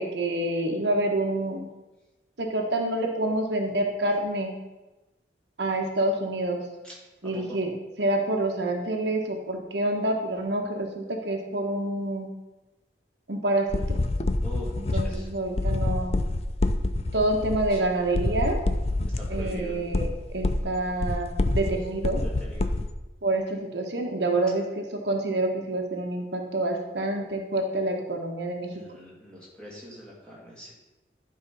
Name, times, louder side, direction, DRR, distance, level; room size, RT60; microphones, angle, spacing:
voice 1, 0.0-1.6 2.4-4.5 5.6-6.6 7.2-7.7 8.0-12.3 13.3-14.0 14.9-16.2 17.1-18.6 19.3-22.2 23.2-28.7, right 1 dB, 75° right, 2 dB, 1.3 m, -27 dB
voice 2, 7.2-7.6 14.4-15.3 17.7-17.8 19.1-19.7 22.2-22.7 28.7-30.7, equal, 5° left, -6 dB, 2.6 m, -43 dB
sound 1, 13.7-22.9, left 2 dB, 35° left, 0.5 m, -27 dB
11.0 x 4.7 x 5.4 m, 1.1 s
head